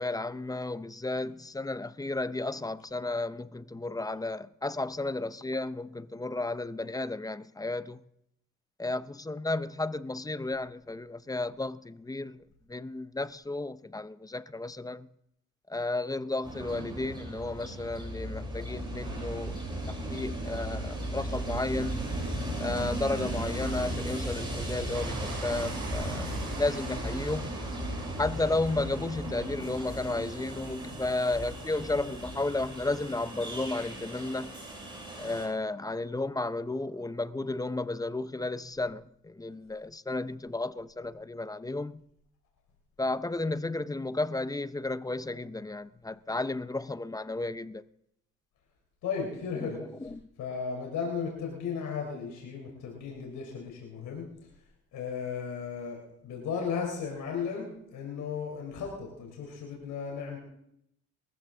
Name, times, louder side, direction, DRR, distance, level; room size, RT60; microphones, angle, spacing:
voice 1, 0.0-8.0 8.8-15.1 15.7-19.6 19.9-22.1 22.6-27.5 28.2-34.6 35.2-42.0 43.0-47.8 49.5-49.7 50.0-50.3, left 2 dB, 10° left, 0.5 m, -33 dB
Train, 16.4-35.4, right 1 dB, 15° right, 7.2 m, -36 dB
sound 1, 24.9-37.5, right 6 dB, 85° right, 3.3 m, -49 dB
voice 2, 49.0-49.8 50.4-54.3 54.9-60.4, left 6 dB, 80° left, 3.8 m, -35 dB
21.5 x 15.0 x 3.8 m
cardioid pair, 90°, 30 cm